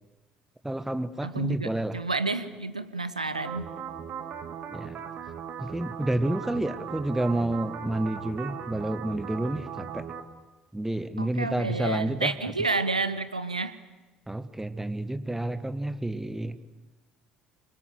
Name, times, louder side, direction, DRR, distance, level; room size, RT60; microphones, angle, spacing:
voice 1, 0.6-2.0 4.7-5.0 5.6-10.1 10.7-12.3 14.3-16.6, right 1 dB, 10° right, 13 dB, 1.7 m, -30 dB
voice 2, 1.2-3.6 11.2-13.8, right 3 dB, 85° right, 13 dB, 1.1 m, -30 dB
sound 1, 3.3-10.2, right 8 dB, 50° right, 2.5 m, -38 dB
28.0 x 25.0 x 8.0 m, 1.1 s
figure-of-eight pair, 55°, 4 cm